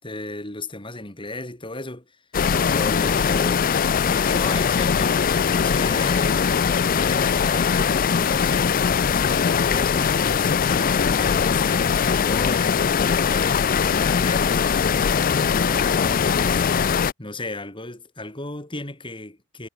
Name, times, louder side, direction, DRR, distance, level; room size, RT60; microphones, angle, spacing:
voice 1, 0.0-2.2 2.7-3.7 4.0-6.4 6.9-15.1 15.5-16.7 17.2-19.7, left 2 dB, 20° left, 3.7 m, -35 dB
sound 1, 2.3-17.1, left 6 dB, 40° left, 0.4 m, -21 dB
head